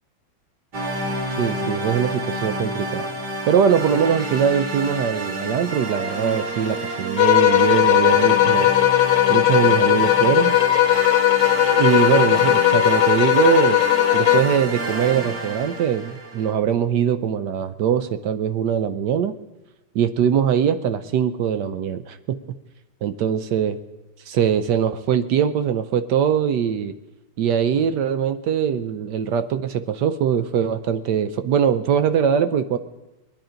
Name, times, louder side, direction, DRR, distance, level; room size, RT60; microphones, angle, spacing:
sound 1, 0.7-16.5, right 1 dB, 50° right, 2.6 m, -29 dB
voice 1, 1.4-3.1 3.5-8.7 9.3-10.6 11.7-13.8 14.1-19.3 19.9-22.4 23.0-23.8 24.3-26.9 27.4-32.8, right 8 dB, 70° right, 11 dB, 1.1 m, -22 dB
sound 2, 7.2-14.6, left 13 dB, 70° left, 1.3 m, -17 dB
21.0 x 10.5 x 5.1 m, 0.98 s
omnidirectional pair, 2.3 m